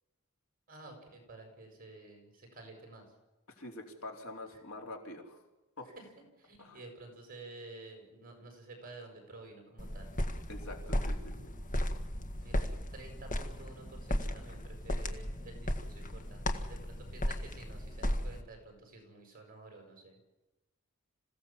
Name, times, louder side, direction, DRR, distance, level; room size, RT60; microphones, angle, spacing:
voice 1, 0.7-3.0 4.5-4.6 5.8-10.1 12.4-20.2, right 2 dB, 45° right, 3 dB, 7.1 m, -51 dB
voice 2, 3.6-5.4 5.8-5.9 6.6-6.8 10.5-11.5, left 1 dB, 70° left, 1 dB, 4.1 m, -45 dB
sound 1, 9.8-18.4, equal, 40° left, 1.8 m, -35 dB
27.0 x 16.5 x 7.5 m, 1.0 s
head